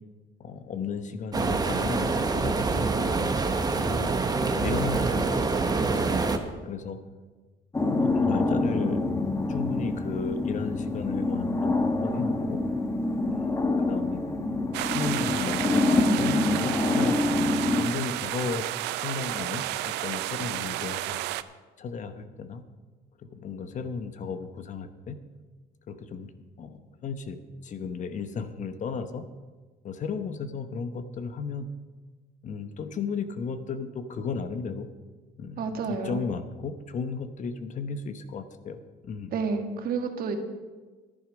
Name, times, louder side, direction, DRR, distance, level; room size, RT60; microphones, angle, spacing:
voice 1, 0.4-3.3 3.7-4.1 4.6-6.2 6.6-7.0 7.9-9.0 9.5-11.8 12.0-12.6 13.3-13.6 13.9-14.2 14.9-17.2 17.7-18.6 18.9-21.2 21.8-22.6 23.3-25.2 25.9-26.3 26.6-29.2 29.8-31.7 32.4-34.9 35.4-38.8 39.0-39.3, left 5 dB, 45° left, 9 dB, 1.0 m, -34 dB
sound 1, 1.3-6.4, right 3 dB, 25° right, 1.0 m, -26 dB
sound 2, 7.7-17.9, left 2 dB, 15° left, 1.3 m, -26 dB
sound 3, 14.7-21.4, right 15 dB, 90° right, 0.5 m, -32 dB
voice 2, 35.6-36.2 39.3-40.4, right 5 dB, 60° right, 5 dB, 1.6 m, -30 dB
11.0 x 11.0 x 5.2 m, 1.3 s
cardioid pair, 110°, 17 cm